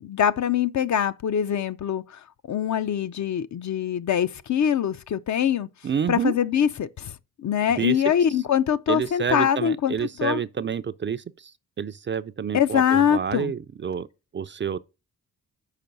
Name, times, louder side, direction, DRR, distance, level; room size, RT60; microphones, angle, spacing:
voice 1, 0.0-2.2 2.5-5.7 6.1-10.4 12.5-13.5, left 9 dB, 50° left, 0.5 m, -23 dB
voice 2, 5.8-6.3 7.8-8.0 8.9-11.5 11.8-14.1 14.3-14.8, right 7 dB, 35° right, 0.4 m, -28 dB
5.8 x 4.5 x 5.3 m
cardioid pair, 65°, 36 cm